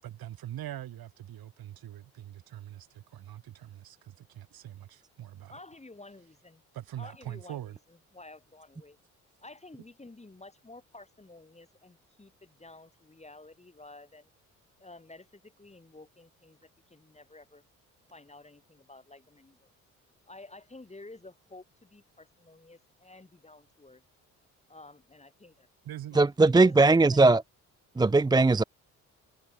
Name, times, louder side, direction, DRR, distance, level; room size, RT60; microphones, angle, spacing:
voice 1, 0.0-5.6 6.7-7.8 25.8-26.2, right 12 dB, 55° right, 7.0 m, -43 dB
voice 2, 5.5-6.6 7.0-9.0 9.4-14.3 14.8-17.6 18.1-19.7 20.3-24.0 24.7-25.7 26.1-27.3, left 2 dB, 15° left, 3.0 m, -51 dB
voice 3, 26.2-27.4 28.0-28.6, right 3 dB, 10° right, 0.6 m, -20 dB
figure-of-eight pair, 45°, 42 cm